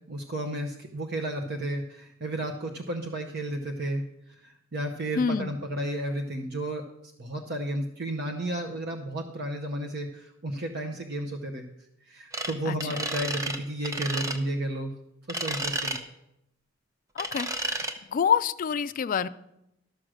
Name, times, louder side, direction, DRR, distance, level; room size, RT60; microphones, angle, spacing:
voice 1, 0.1-4.0 4.4-6.8 7.2-11.7 12.1-14.9 15.3-15.9, right 1 dB, 55° right, 3 dB, 0.9 m, -32 dB
voice 2, 5.2-5.6 12.7-13.0 17.2-17.8 18.1-19.3, left 7 dB, 40° left, 15 dB, 0.3 m, -27 dB
sound 1, 12.3-12.5 12.8-13.6 13.8-14.4 15.3-16.0 17.2-17.9, right 1 dB, 15° right, 0.8 m, -31 dB
13.0 x 6.2 x 6.3 m, 0.83 s
head